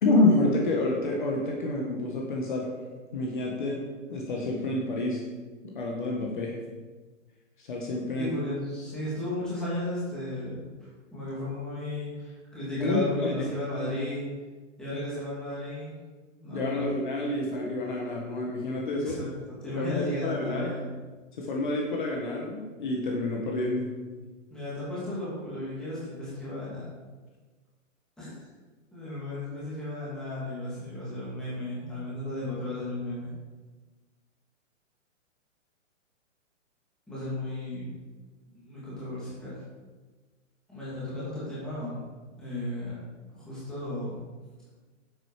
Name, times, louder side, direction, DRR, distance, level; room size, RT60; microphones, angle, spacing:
voice 1, 0.0-2.7 3.1-3.8 4.1-5.2 5.6-6.6 7.6-8.3 12.8-13.3 16.5-19.2 19.8-20.7 21.4-23.9, left 2 dB, 40° left, -1 dB, 1.6 m, -28 dB
voice 2, 8.2-14.2 14.8-16.0 16.4-16.9 19.0-19.3 19.6-20.8 24.5-26.9 28.2-28.3 28.9-33.3 37.1-37.9 38.5-39.6 40.7-42.0 42.4-43.0 43.3-44.2, left 1 dB, ahead, -10 dB, 2.5 m, -34 dB
10.5 x 8.3 x 4.8 m, 1.3 s
hypercardioid pair, 180°, 38 cm